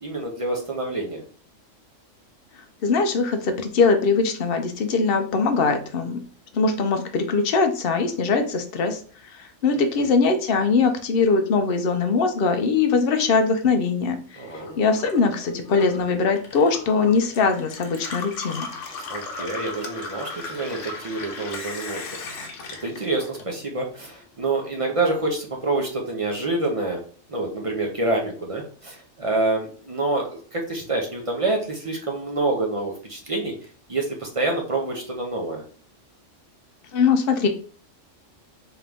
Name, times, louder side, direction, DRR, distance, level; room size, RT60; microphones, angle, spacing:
voice 1, 0.0-1.2 9.7-10.1 14.4-14.8 19.1-22.0 22.8-27.0 27.3-33.5 33.9-35.6, right 2 dB, 35° right, 1 dB, 0.6 m, -27 dB
voice 2, 2.8-6.2 6.5-9.0 9.3-14.4 14.8-18.7 36.9-37.5, left 4 dB, 55° left, 7 dB, 0.7 m, -21 dB
Gurgling / Water tap faucet / Sink (filling or washing), 14.4-23.9 24.2-25.1, left 3 dB, 75° left, 1.1 m, -36 dB
3.7 x 3.0 x 3.4 m, 0.43 s
omnidirectional pair, 1.3 m